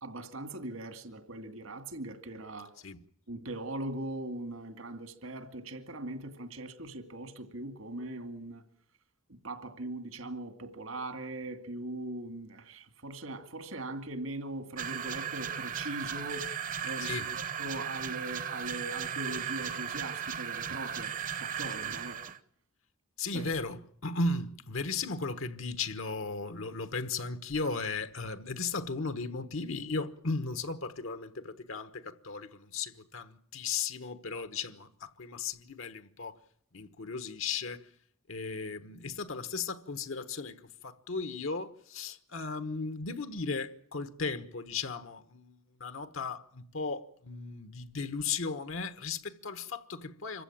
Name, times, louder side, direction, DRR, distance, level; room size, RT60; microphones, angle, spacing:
voice 1, 0.0-2.7 3.3-8.6 9.3-16.5 16.8-22.3 23.3-23.5, right 2 dB, 75° right, 2.4 m, -40 dB
sound 1, 14.8-22.4, right 8 dB, 40° right, 0.9 m, -36 dB
voice 2, 17.0-17.3 23.2-36.4 36.7-37.8 38.3-40.6 40.8-50.4, left 4 dB, 70° left, 1.2 m, -36 dB
26.0 x 15.0 x 8.7 m
head